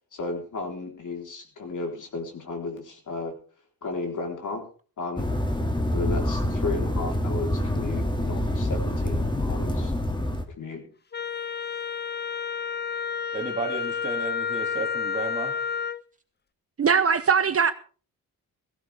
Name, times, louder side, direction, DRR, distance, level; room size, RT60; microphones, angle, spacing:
voice 1, 0.1-3.3 3.8-4.6 5.0-5.3 5.9-9.9 10.6-10.9, left 3 dB, 60° left, 4.0 m, -34 dB
sound 1, 5.2-10.4, left 1 dB, 15° left, 2.4 m, -26 dB
Wind instrument woodwind instrument, 11.1-16.0, left 7 dB, 30° left, 0.7 m, -30 dB
voice 2, 13.3-15.5, right 3 dB, 20° right, 2.7 m, -33 dB
voice 3, 16.8-17.7, right 6 dB, 40° right, 0.9 m, -20 dB
16.5 x 15.5 x 3.5 m
cardioid pair, 90°, 35 cm